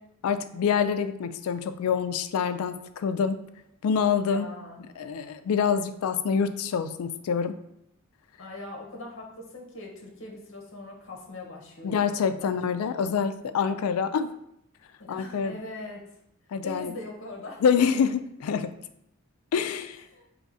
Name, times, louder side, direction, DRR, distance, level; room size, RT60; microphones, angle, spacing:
voice 1, 0.2-3.4 3.8-4.5 5.0-7.6 11.8-14.3 15.1-15.5 16.5-16.9 17.6-18.7 19.5-20.0, left 6 dB, 85° left, 11 dB, 0.3 m, -26 dB
voice 2, 4.2-4.9 8.4-12.5 12.9-13.7 15.0-16.2 16.6-17.6 20.1-20.3, left 2 dB, 65° left, 0 dB, 0.9 m, -42 dB
4.7 x 3.1 x 2.6 m, 0.77 s
head